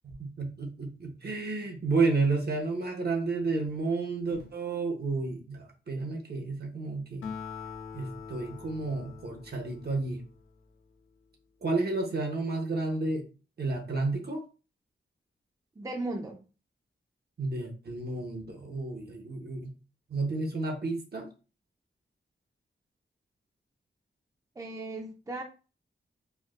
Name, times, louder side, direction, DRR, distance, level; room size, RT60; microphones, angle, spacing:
voice 1, 0.0-7.3 7.9-10.2 11.6-13.3 13.6-14.4 17.4-19.7 20.1-21.3, right 3 dB, 55° right, 2 dB, 0.8 m, -31 dB
Acoustic guitar, 7.2-10.8, left 6 dB, 85° left, 0.5 m, -43 dB
voice 2, 15.8-16.4 24.6-25.4, right 2 dB, 15° right, 3 dB, 0.5 m, -36 dB
4.4 x 2.2 x 2.4 m, 0.34 s
wide cardioid pair, 85°, 20 cm